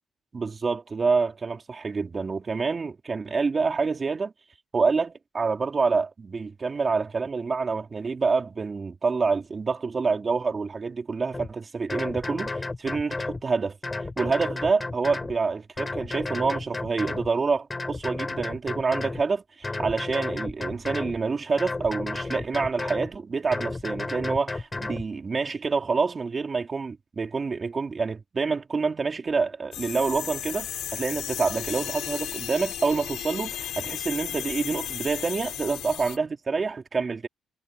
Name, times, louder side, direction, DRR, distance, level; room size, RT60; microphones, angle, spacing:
voice 1, 0.3-4.3 4.7-13.8 14.2-37.3, right 4 dB, 35° right, 3.3 m, -27 dB
sound 1, 11.3-11.5 11.9-13.4 13.8-15.4 15.8-17.3 17.7-19.2 19.6-21.2 21.6-23.1 23.5-25.0, left 3 dB, 20° left, 4.6 m, -32 dB
sound 2, 29.7-36.2, left 11 dB, 80° left, 3.7 m, -34 dB
cardioid pair, 90°, 0 cm